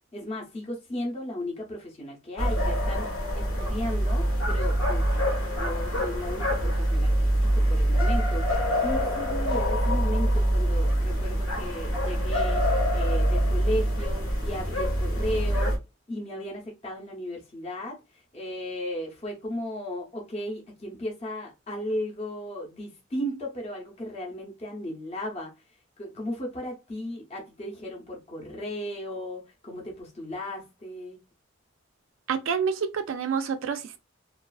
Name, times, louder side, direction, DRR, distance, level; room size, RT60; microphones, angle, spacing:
voice 1, 0.1-3.1 3.3-5.0 5.5-7.2 7.5-8.4 8.8-12.6 12.9-15.7 16.1-18.0 18.3-25.5 26.0-31.2, left 1 dB, 30° left, 0.6 m, -35 dB
sound 1, 2.4-15.8, equal, 85° left, 0.9 m, -25 dB
voice 2, 32.3-34.0, right 6 dB, 75° right, 0.3 m, -28 dB
2.4 x 2.3 x 2.3 m
head